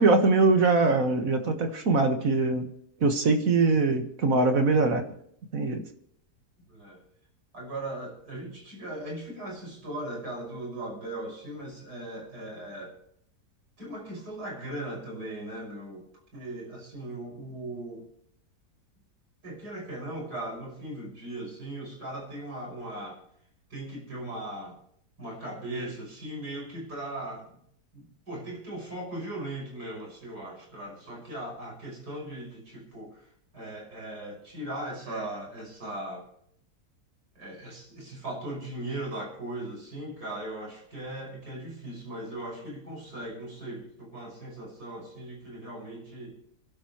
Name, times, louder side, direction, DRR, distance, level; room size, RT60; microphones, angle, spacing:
voice 1, 0.0-2.7 3.0-5.1 5.5-5.8, right 3 dB, 55° right, 6 dB, 1.9 m, -22 dB
voice 2, 6.7-7.0 7.5-12.9 13.8-16.1 16.3-18.0 19.4-23.2 23.7-24.8 25.2-27.6 27.9-33.3 33.5-36.3 37.3-46.4, right 1 dB, 75° right, 0 dB, 6.6 m, -38 dB
29.5 x 12.0 x 3.1 m, 0.68 s
omnidirectional pair, 1.7 m